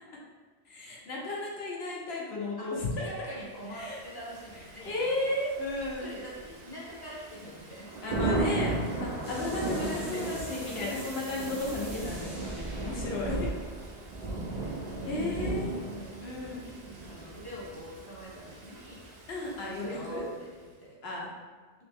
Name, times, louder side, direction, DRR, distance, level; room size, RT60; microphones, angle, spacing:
voice 1, 0.7-3.1 3.7-4.0 4.8-6.1 8.0-13.5 15.1-15.7 16.2-16.7 19.3-20.3 21.0-21.3, left 2 dB, 70° left, -3 dB, 1.1 m, -34 dB
voice 2, 3.0-5.4 5.8-7.9 9.8-11.1 12.5-12.8 14.6-15.3 15.8-16.1 17.0-19.1 19.6-20.5 20.8-21.0, equal, 20° left, -6 dB, 0.9 m, -44 dB
Thunder / Rain, 3.8-20.4, right 2 dB, 50° right, 0.6 m, -36 dB
sound 1, 9.2-14.9, right 2 dB, 65° right, 1.1 m, -47 dB
3.4 x 3.1 x 3.4 m, 1.4 s
omnidirectional pair, 1.1 m